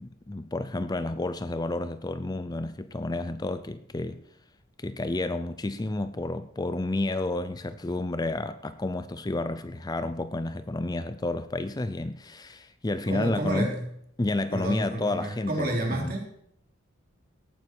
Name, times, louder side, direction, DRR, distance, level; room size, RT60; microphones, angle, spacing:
voice 1, 0.0-4.2 4.8-13.7 14.2-16.1, left 2 dB, 20° left, 0.5 m, -30 dB
voice 2, 13.1-13.8 14.5-16.4, right 1 dB, 45° right, 3.9 m, -30 dB
18.0 x 9.3 x 4.6 m
head